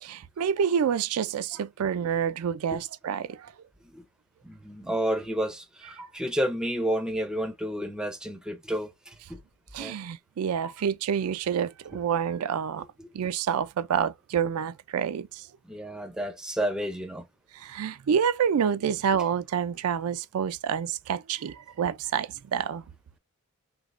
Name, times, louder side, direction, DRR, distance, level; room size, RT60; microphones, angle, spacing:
voice 1, 0.0-3.5 9.7-12.9 13.1-15.5 17.5-22.8, right 7 dB, 85° right, 0.4 m, -28 dB
voice 2, 4.4-9.4 9.8-10.0 10.6-10.7 13.0-13.1 15.7-17.2, equal, 5° right, 0.5 m, -31 dB
3.4 x 2.9 x 2.4 m
head